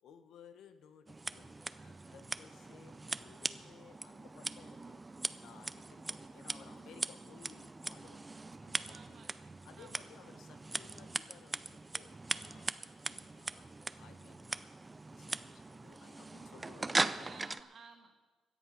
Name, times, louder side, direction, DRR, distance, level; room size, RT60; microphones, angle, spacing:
voice 1, 0.0-1.5 1.8-8.3 8.6-9.2 9.6-12.8 13.3-14.7 15.1-17.4, left 7 dB, 75° left, 9 dB, 1.0 m, -59 dB
Scissors, 1.1-17.6, right 3 dB, 15° right, 0.4 m, -40 dB
voice 2, 1.2-2.3 8.9-10.4 13.1-13.3 17.2-18.1, right 5 dB, 50° right, 4 dB, 1.8 m, -58 dB
16.5 x 10.5 x 5.5 m, 1.3 s
cardioid pair, 140°, 0 cm